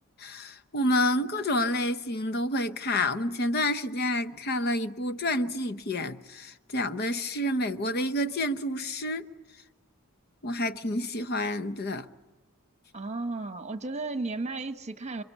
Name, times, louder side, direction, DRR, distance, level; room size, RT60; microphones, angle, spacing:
voice 1, 0.2-9.2 10.4-12.1, left 1 dB, 45° left, 0.8 m, -29 dB
voice 2, 12.9-15.2, right 3 dB, 30° right, 1.2 m, -34 dB
28.5 x 24.5 x 8.5 m
head